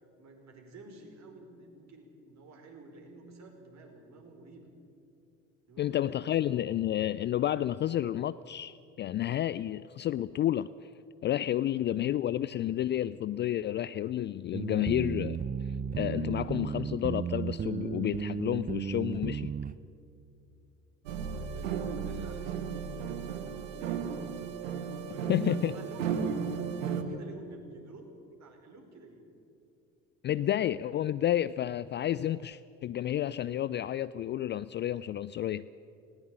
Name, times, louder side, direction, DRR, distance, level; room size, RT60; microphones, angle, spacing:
voice 1, 0.2-4.7 5.7-6.6 11.7-11.9 21.2-22.6 23.1-24.4 24.9-26.5 26.8-28.0 28.3-29.2, right 3 dB, 45° right, 2 dB, 5.0 m, -50 dB
voice 2, 5.8-10.7 11.2-15.4 16.0-19.5 25.3-25.7 30.2-35.7, left 12 dB, 30° left, 17 dB, 0.4 m, -30 dB
sound 1, 14.5-19.7, right 7 dB, 20° right, 0.6 m, -34 dB
sound 2, 21.1-27.0, right 6 dB, 75° right, 1.6 m, -34 dB
19.5 x 17.0 x 8.7 m, 2.6 s
figure-of-eight pair, 65°, 39 cm